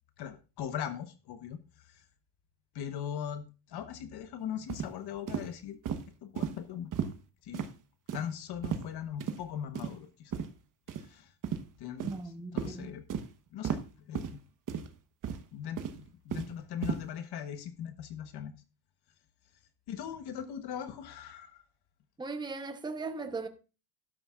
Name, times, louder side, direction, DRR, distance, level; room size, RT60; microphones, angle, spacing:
voice 1, 0.2-2.1 2.7-5.8 6.2-7.1 7.4-7.7 8.1-10.4 10.9-11.3 11.8-13.0 13.5-14.4 15.5-18.5 19.9-21.6, left 9 dB, 55° left, 1.2 m, -40 dB
sound 1, 4.7-4.9 5.3-5.5 5.9-6.0 6.4-6.5 6.9-7.1 7.5-7.7 8.1-8.3 8.6-8.9 9.2-9.4 9.8-9.9 10.3-10.5 10.9-11.0 11.4-11.6 12.0-12.2 12.6-12.7 13.1-13.3 13.6-13.8 14.2-14.3 14.7-14.9 15.2-15.5 15.8-16.5 16.8-17.0, right 8 dB, 45° right, 1.2 m, -34 dB
voice 2, 12.0-12.9 22.2-23.5, right 3 dB, 10° right, 0.9 m, -38 dB
12.5 x 12.0 x 2.5 m
cardioid pair, 145°, 46 cm